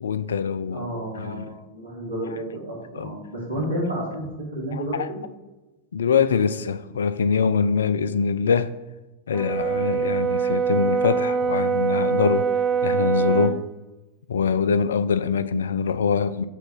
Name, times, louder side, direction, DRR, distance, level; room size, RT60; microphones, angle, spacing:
voice 1, 0.0-0.9 1.1-1.5 2.9-3.1 3.6-3.7 4.7-5.1 5.9-8.8 9.3-12.5 12.8-13.6 14.3-16.4, left 6 dB, 65° left, 0.3 m, -23 dB
voice 2, 0.7-5.2, right 1 dB, 75° right, 1.8 m, -31 dB
Brass instrument, 9.3-13.6, right 6 dB, 25° right, 0.3 m, -23 dB
5.8 x 3.8 x 6.0 m
figure-of-eight pair, 90°, 0 cm